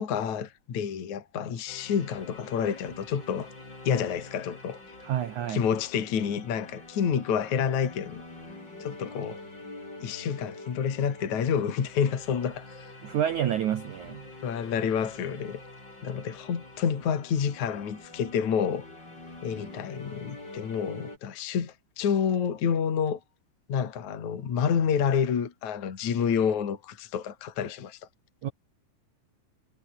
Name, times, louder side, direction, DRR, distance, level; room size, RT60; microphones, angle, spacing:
voice 1, 0.0-3.5 3.8-4.8 5.5-8.2 8.8-9.4 10.0-12.9 14.4-15.6 16.0-18.9 19.4-23.2 23.7-28.0, left 7 dB, 45° left, 3.8 m, -28 dB
sound 1, 1.7-21.2, left 2 dB, 20° left, 8.2 m, -46 dB
voice 2, 5.0-5.6 13.0-14.3 28.4-28.5, right 10 dB, 80° right, 1.7 m, -29 dB
omnidirectional pair, 5.5 m